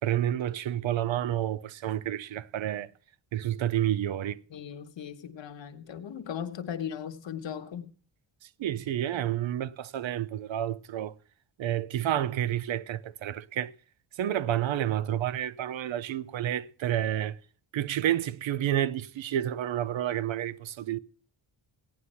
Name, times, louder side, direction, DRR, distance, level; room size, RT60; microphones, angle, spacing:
voice 1, 0.0-2.9 3.3-4.4 8.6-11.2 11.6-13.7 14.2-17.4 17.7-21.0, right 11 dB, 70° right, 0.7 m, -30 dB
voice 2, 4.5-7.9, left 8 dB, 65° left, 1.4 m, -38 dB
16.0 x 9.7 x 5.6 m
cardioid pair, 105°, 47 cm